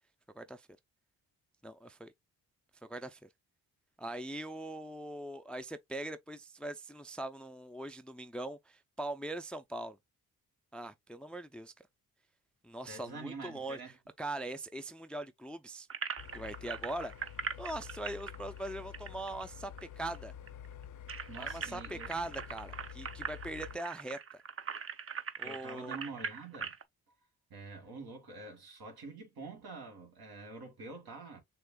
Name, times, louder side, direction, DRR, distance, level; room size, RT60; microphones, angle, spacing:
voice 1, 0.3-0.7 1.6-2.1 2.8-3.3 4.0-10.0 10.7-11.7 12.6-13.8 14.2-15.9 16.3-17.1 17.6-20.3 21.4-24.2 25.4-26.0, right 1 dB, 5° left, 0.4 m, -41 dB
voice 2, 12.8-14.0 21.3-22.1 25.4-26.7 27.5-31.4, right 3 dB, 70° right, 1.9 m, -46 dB
sound 1, 15.9-19.8 20.1-20.2 20.5-26.8, right 6 dB, 35° right, 0.7 m, -41 dB
sound 2, 16.2-23.8, left 9 dB, 55° left, 0.6 m, -49 dB
6.6 x 2.5 x 2.2 m
supercardioid pair, 65°, 38 cm